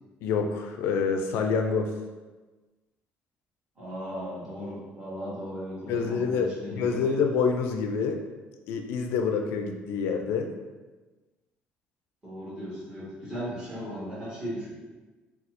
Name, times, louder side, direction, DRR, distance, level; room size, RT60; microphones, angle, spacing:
voice 1, 0.2-1.9 5.9-8.2 8.7-10.5, left 5 dB, 85° left, 5 dB, 0.3 m, -27 dB
voice 2, 3.7-7.2 12.2-14.7, equal, 20° right, -9 dB, 1.5 m, -37 dB
4.1 x 2.3 x 2.5 m, 1.3 s
cardioid pair, 135°, 4 cm